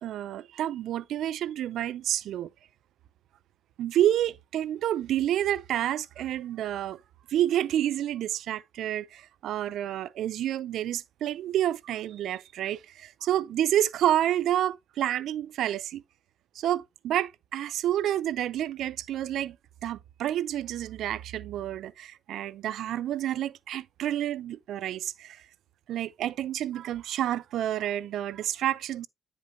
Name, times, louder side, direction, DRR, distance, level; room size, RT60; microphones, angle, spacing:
voice 1, 0.0-2.5 3.8-7.0 7.3-16.0 16.6-19.6 19.8-25.4 25.9-29.1, right 12 dB, 75° right, 0.4 m, -29 dB
9.6 x 5.3 x 2.8 m
cardioid pair, 90°, 0 cm